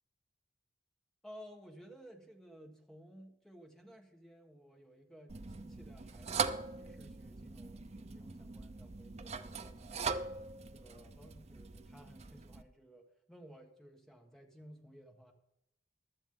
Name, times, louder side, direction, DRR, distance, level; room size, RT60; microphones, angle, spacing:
voice 1, 1.2-10.1 10.7-15.3, equal, ahead, 2 dB, 1.5 m, -56 dB
sound 1, 5.3-12.6, right 5 dB, 35° right, 0.6 m, -41 dB
15.5 x 11.5 x 3.9 m, 0.81 s
head